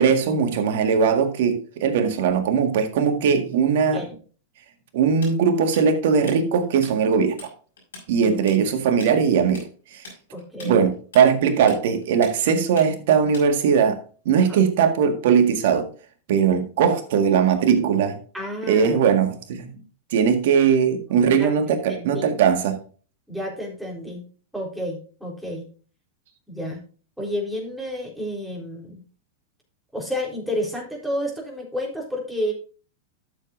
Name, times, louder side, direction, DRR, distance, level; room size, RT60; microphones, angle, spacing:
voice 1, 0.0-4.0 4.9-7.4 8.1-9.6 9.9-10.0 10.6-14.0 14.2-15.9 16.3-18.2 18.7-19.7 20.1-22.8, right 6 dB, 65° right, 1.8 m, -20 dB
Tools, 5.2-6.9 7.2-7.5 7.8-13.8, left 3 dB, 80° left, 5.5 m, -42 dB
voice 2, 10.3-10.7 14.3-14.6 17.5-17.6 18.3-18.9 21.4-21.5 21.9-22.3 23.3-24.2 24.5-25.7 26.5-26.8 27.2-29.0 29.9-32.5, equal, ahead, 3.9 m, -30 dB
12.5 x 7.4 x 2.6 m
hypercardioid pair, 100°, 0 cm